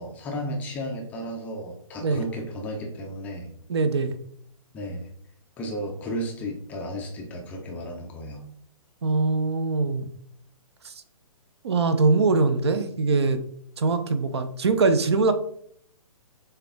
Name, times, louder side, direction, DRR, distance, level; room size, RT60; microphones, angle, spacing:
voice 1, 0.0-3.5 4.7-5.1 5.6-8.4, equal, 10° left, 0 dB, 0.4 m, -33 dB
voice 2, 3.7-4.1 9.0-10.1 10.8-10.9 11.6-13.4 13.8-15.3, right 3 dB, 50° right, 10 dB, 0.6 m, -22 dB
6.7 x 2.3 x 3.4 m, 0.65 s
figure-of-eight pair, 130°, 18 cm